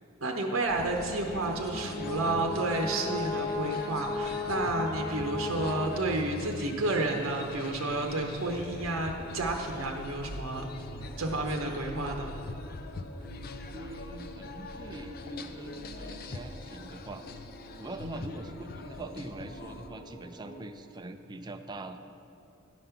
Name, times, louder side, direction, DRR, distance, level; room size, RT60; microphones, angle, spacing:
voice 1, 0.2-10.6 11.2-12.4 18.0-18.3, right 2 dB, 70° right, 2 dB, 0.8 m, -31 dB
sound 1, 0.7-19.9, left 2 dB, 45° left, 0.4 m, -43 dB
Brass instrument, 1.3-6.4, left 3 dB, ahead, 1.8 m, -35 dB
sound 2, 1.9-20.6, equal, 15° left, 1.7 m, -51 dB
voice 2, 5.2-5.5 11.0-11.2 13.7-17.2 17.7-22.1, right 2 dB, 20° right, 7 dB, 0.4 m, -43 dB
11.0 x 5.3 x 5.7 m, 2.6 s
head